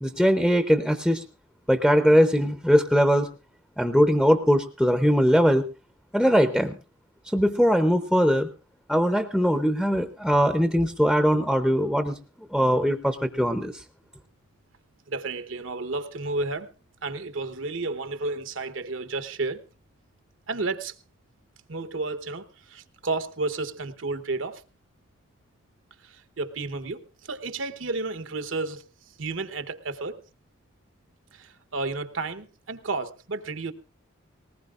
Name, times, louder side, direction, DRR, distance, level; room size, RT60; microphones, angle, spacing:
voice 1, 0.0-1.2 1.7-3.3 3.8-5.6 6.1-6.7 7.3-8.5 8.9-12.1 12.5-13.7, equal, ahead, 0.6 m, -21 dB
voice 2, 15.1-16.7 17.0-19.6 20.5-21.0 21.7-24.6 26.0-30.2 31.3-33.7, right 3 dB, 75° right, 1.1 m, -32 dB
19.5 x 19.0 x 2.5 m
head